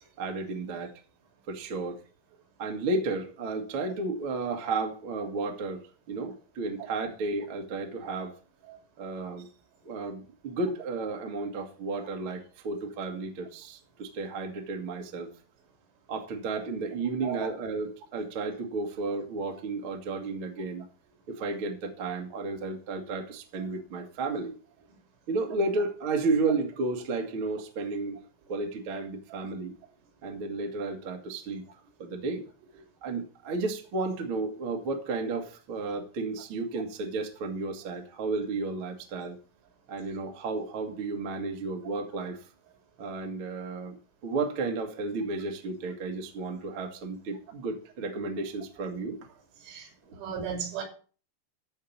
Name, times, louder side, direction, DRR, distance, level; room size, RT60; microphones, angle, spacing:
voice 1, 0.2-0.9 1.5-2.0 2.6-8.4 9.0-9.5 9.8-15.3 16.1-20.8 21.3-24.5 25.3-28.2 28.5-29.7 30.2-31.6 32.0-32.5 33.0-39.4 39.9-42.4 43.0-44.0 44.2-49.3 50.1-50.2, right 3 dB, 50° right, 1.5 m, -33 dB
voice 2, 50.2-50.8, right 7 dB, 80° right, 5.3 m, -34 dB
13.5 x 4.8 x 7.2 m
omnidirectional pair, 5.4 m